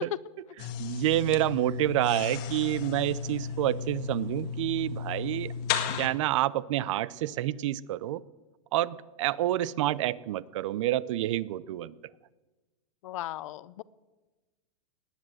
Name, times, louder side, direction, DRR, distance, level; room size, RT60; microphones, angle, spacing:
sound 1, 0.6-6.1, left 7 dB, 45° left, 1.8 m, -34 dB
voice 1, 0.8-5.5 6.0-8.2 8.7-12.0, right 14 dB, 60° right, 21 dB, 0.6 m, -28 dB
voice 2, 13.0-13.8, left 14 dB, 65° left, 20 dB, 0.6 m, -37 dB
18.5 x 9.9 x 7.6 m, 1.2 s
supercardioid pair, 150°, 18 cm